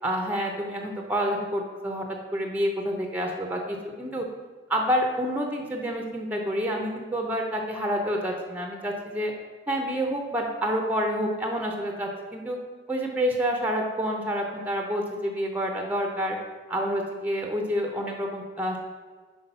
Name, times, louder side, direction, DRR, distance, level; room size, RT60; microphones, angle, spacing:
voice 1, 0.0-2.1 2.3-4.3 4.7-9.3 9.7-12.6 12.9-16.4 16.7-18.8, equal, 10° right, 2 dB, 0.7 m, -28 dB
5.7 x 4.9 x 5.4 m, 1.4 s
head